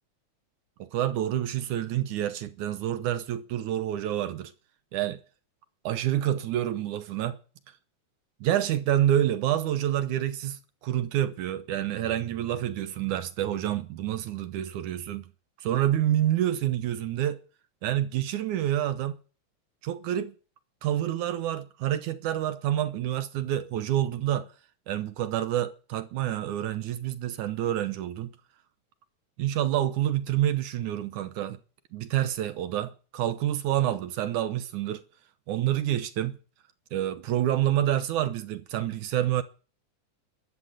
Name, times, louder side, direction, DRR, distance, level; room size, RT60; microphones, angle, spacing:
voice 1, 0.8-4.5 4.9-5.2 5.8-7.4 8.4-15.3 15.6-17.4 17.8-19.2 19.8-20.3 20.8-24.5 24.9-28.3 29.4-31.6 31.9-35.0 35.5-36.4 36.9-39.4, right 12 dB, 75° right, 2.4 m, -28 dB
14.0 x 11.0 x 8.1 m
omnidirectional pair, 3.7 m